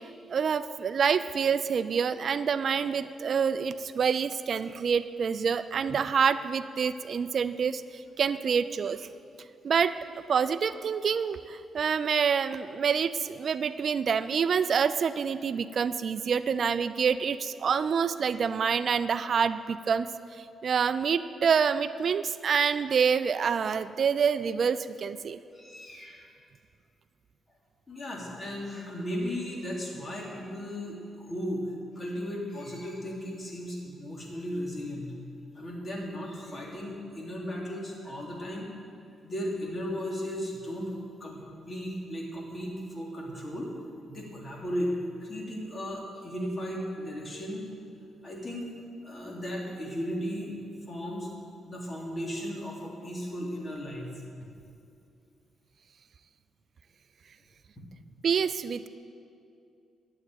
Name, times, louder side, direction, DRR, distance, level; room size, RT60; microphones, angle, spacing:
voice 1, 0.3-9.1 9.6-20.1 20.4-25.4 58.2-58.9, right 6 dB, 55° right, 13 dB, 0.4 m, -27 dB
voice 2, 25.5-26.3 27.9-31.7 31.9-35.2 35.5-38.7 39.2-40.9 41.2-43.7 44.1-47.7 48.2-48.7 49.0-51.3 51.6-54.1 57.8-57.9, equal, 30° left, -2 dB, 3.2 m, -36 dB
11.5 x 8.0 x 9.0 m, 2.6 s
cardioid pair, 85°, 0 cm